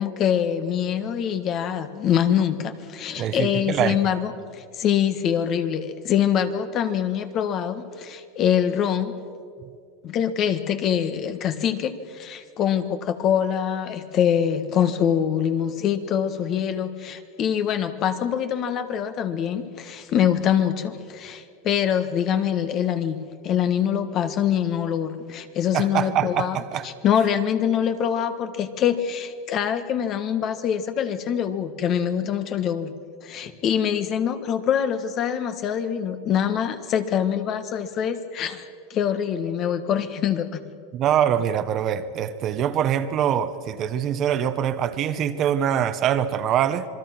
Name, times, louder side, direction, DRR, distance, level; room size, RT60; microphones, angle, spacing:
voice 1, 0.0-9.1 10.0-26.6 26.8-32.9 33.2-38.6 38.9-40.6, left 9 dB, 40° left, 1.5 m, -24 dB
voice 2, 3.2-4.0 25.7-26.9 40.9-46.9, right 9 dB, 40° right, 1.1 m, -24 dB
27.0 x 21.5 x 6.0 m
supercardioid pair, 135°, 0 cm